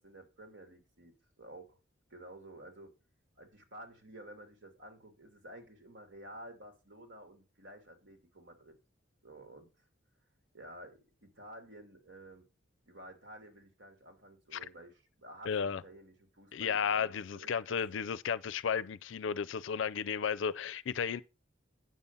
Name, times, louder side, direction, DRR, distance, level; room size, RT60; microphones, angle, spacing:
voice 1, 0.0-1.8 2.1-2.9 3.4-8.8 9.2-9.8 10.5-12.5 12.9-17.8, right 1 dB, 75° right, 2.6 m, -52 dB
voice 2, 15.5-15.8 16.5-21.2, left 7 dB, 75° left, 0.4 m, -33 dB
9.4 x 7.0 x 5.4 m
head